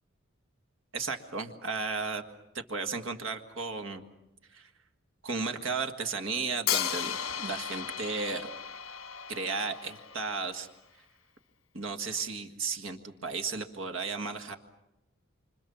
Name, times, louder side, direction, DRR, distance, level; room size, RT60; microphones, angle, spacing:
voice 1, 0.9-2.2 2.5-4.0 4.5-4.7 5.2-8.5 9.3-10.7 11.7-14.6, right 4 dB, 65° right, 6 dB, 1.8 m, -34 dB
Hi-hat, 6.7-10.6, left 9 dB, 75° left, 1.3 m, -35 dB
28.5 x 25.5 x 7.1 m, 0.91 s
head